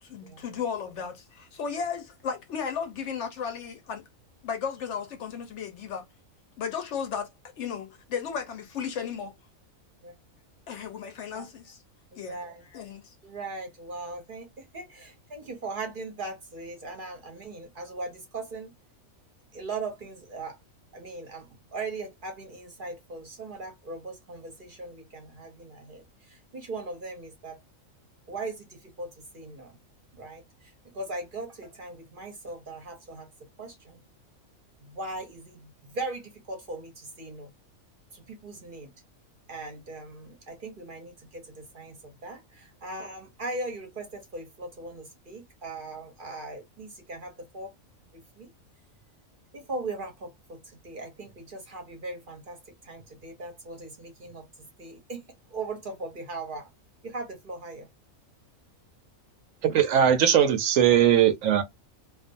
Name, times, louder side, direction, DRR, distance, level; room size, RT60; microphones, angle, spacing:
voice 1, 0.0-4.0 4.4-6.0 6.6-7.3 7.6-9.3 10.7-11.8 12.2-12.4 12.6-13.1, left 7 dB, 65° left, 0.8 m, -34 dB
voice 2, 12.1-12.7 13.2-18.7 19.5-20.6 20.9-27.6 28.3-29.8 30.1-33.3 33.6-34.0 34.8-37.5 38.1-38.9 39.5-47.7 48.1-48.5 49.5-50.6 50.8-54.4 54.8-55.2 55.5-56.7 57.0-57.9, right 2 dB, 45° right, 0.8 m, -39 dB
voice 3, 59.6-61.6, right 9 dB, 70° right, 0.9 m, -20 dB
2.4 x 2.3 x 2.5 m
omnidirectional pair, 1.5 m